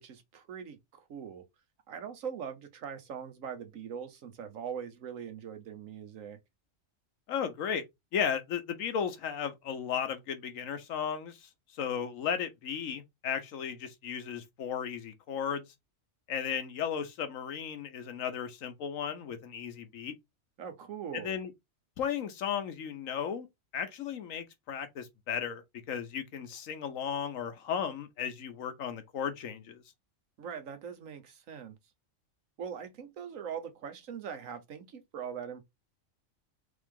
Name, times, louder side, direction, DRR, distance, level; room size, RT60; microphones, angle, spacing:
voice 1, 0.0-1.5 1.9-6.4 20.6-21.4 30.4-31.8 32.6-35.6, right 7 dB, 85° right, 1.3 m, -41 dB
voice 2, 7.3-7.8 8.1-15.6 16.3-20.1 21.1-21.5 22.0-23.5 23.7-25.6 25.9-29.8, left 8 dB, 85° left, 1.2 m, -35 dB
3.7 x 3.5 x 3.6 m
omnidirectional pair, 1.3 m